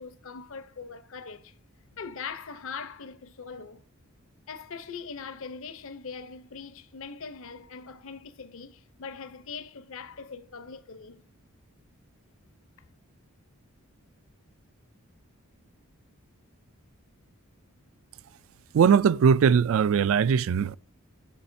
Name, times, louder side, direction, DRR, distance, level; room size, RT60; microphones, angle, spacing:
voice 1, 0.0-1.5 1.9-3.8 4.5-11.2, left 5 dB, 65° left, 0.7 m, -41 dB
voice 2, 18.7-20.8, right 7 dB, 60° right, 0.3 m, -20 dB
8.3 x 6.2 x 2.6 m
head